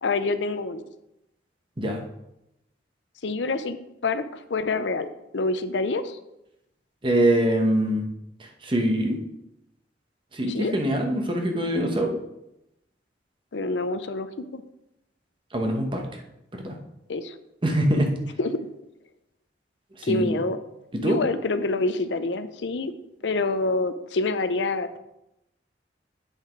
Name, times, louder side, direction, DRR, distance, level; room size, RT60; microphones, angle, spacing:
voice 1, 0.0-0.8 3.2-3.8 4.0-6.2 10.5-10.7 13.5-14.6 17.1-17.4 18.4-18.7 20.0-20.6 21.0-22.9 23.2-25.0, left 3 dB, 80° left, 11 dB, 0.6 m, -27 dB
voice 2, 7.0-8.0 8.6-9.2 10.3-12.2 15.5-16.0 16.5-16.8 17.6-18.1 20.0-20.3 21.0-21.2, right 1 dB, 30° right, 3 dB, 1.1 m, -23 dB
8.2 x 5.8 x 4.5 m, 0.86 s
head